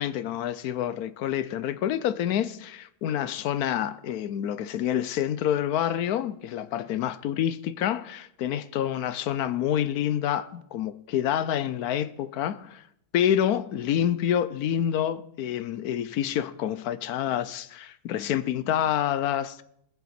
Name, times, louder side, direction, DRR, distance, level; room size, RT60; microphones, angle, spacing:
voice 1, 0.0-12.8 13.1-19.6, left 10 dB, 70° left, 1.1 m, -27 dB
20.5 x 8.3 x 4.3 m
omnidirectional pair, 1.7 m